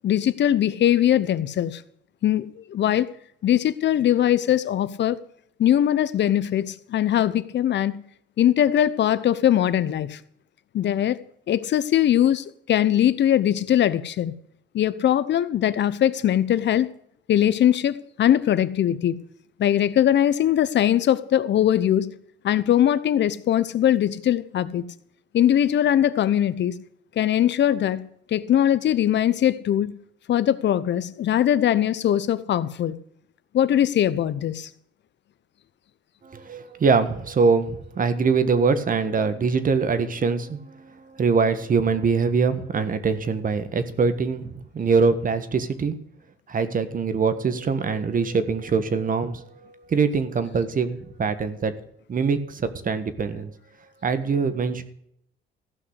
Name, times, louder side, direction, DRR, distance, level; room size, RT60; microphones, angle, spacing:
voice 1, 0.0-1.8 2.2-3.1 3.4-5.2 5.6-8.0 8.4-10.2 10.7-11.2 11.5-14.3 14.7-16.9 17.3-19.2 19.6-22.1 22.4-24.8 25.3-26.8 27.2-28.0 28.3-29.9 30.3-32.9 33.5-34.7, left 11 dB, 65° left, 16 dB, 0.9 m, -21 dB
voice 2, 36.2-46.0 46.5-51.7 52.1-53.5 54.0-54.8, right 5 dB, 45° right, 12 dB, 1.5 m, -23 dB
15.0 x 5.9 x 8.1 m, 0.71 s
cardioid pair, 90°, 20 cm